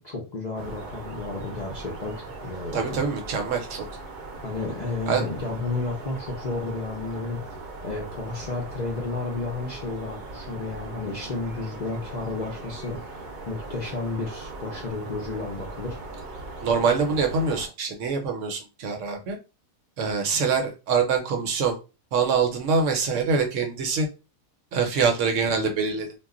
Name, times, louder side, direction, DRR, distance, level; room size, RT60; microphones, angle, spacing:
voice 1, 0.0-3.0 4.4-7.4 7.8-16.0 17.1-17.2, left 3 dB, 50° left, -2 dB, 0.5 m, -32 dB
sound 1, 0.5-17.7, right 2 dB, 50° right, 0.6 m, -39 dB
voice 2, 2.7-3.8 5.1-5.3 16.6-19.4 20.0-21.8 22.1-24.1 24.7-26.2, right 5 dB, 70° right, 4 dB, 0.9 m, -24 dB
2.3 x 2.1 x 3.6 m, 0.30 s
omnidirectional pair, 1.4 m